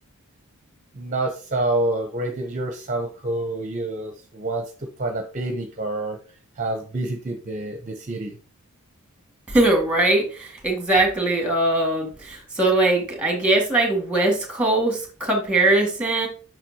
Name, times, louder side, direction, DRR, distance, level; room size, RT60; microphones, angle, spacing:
voice 1, 0.9-4.7 5.0-6.2 6.6-8.4, right 2 dB, 35° right, 5 dB, 0.7 m, -27 dB
voice 2, 9.5-16.3, right 2 dB, 5° right, 2 dB, 1.8 m, -21 dB
7.4 x 5.9 x 2.8 m, 0.38 s
head